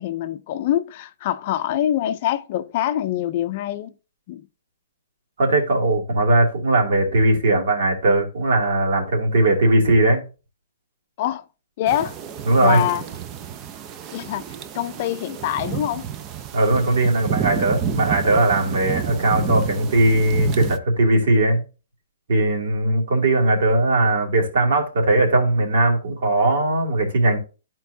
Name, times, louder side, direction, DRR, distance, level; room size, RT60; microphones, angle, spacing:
voice 1, 0.0-3.9 4.3-4.4 11.2-11.4 11.8-12.2 12.6-13.0 14.1-16.1, left 12 dB, 40° left, 0.5 m, -25 dB
voice 2, 5.4-10.2 12.5-12.8 16.5-21.6 22.3-27.4, right 2 dB, 65° right, 2.7 m, -19 dB
sound 1, 11.9-20.8, right 9 dB, 25° right, 0.6 m, -30 dB
12.0 x 4.6 x 2.7 m
hypercardioid pair, 155°, 0 cm